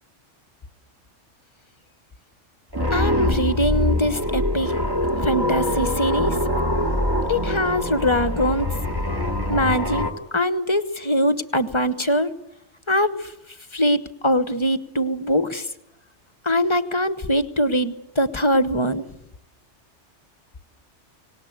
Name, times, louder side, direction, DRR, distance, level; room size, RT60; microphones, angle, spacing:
sound 1, 2.7-10.1, left 1 dB, 20° right, 1.9 m, -24 dB
voice 1, 2.9-4.7 5.2-6.4 7.3-8.7 9.5-10.1 10.3-12.3 12.9-13.3 13.7-15.7 16.4-19.0, equal, 25° left, 12 dB, 1.0 m, -22 dB
25.0 x 19.0 x 7.9 m, 0.88 s
omnidirectional pair, 1.3 m